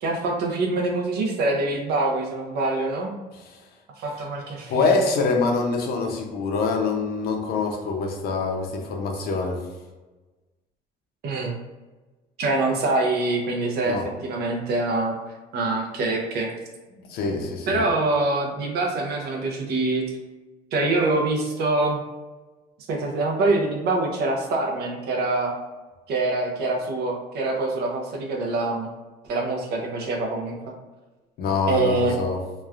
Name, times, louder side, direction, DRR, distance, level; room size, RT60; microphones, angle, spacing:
voice 1, 0.0-3.1 4.0-4.9 11.2-11.5 12.4-15.2 15.5-16.5 17.7-20.1 20.7-22.0 22.9-25.5 26.1-28.9 29.2-30.5 31.7-32.1, right 2 dB, 75° right, 1 dB, 0.6 m, -25 dB
voice 2, 4.7-9.6 13.9-14.1 17.1-17.8 31.4-32.4, left 4 dB, 65° left, 2 dB, 0.6 m, -25 dB
3.0 x 2.2 x 2.4 m, 1.2 s
cardioid pair, 110°, 17 cm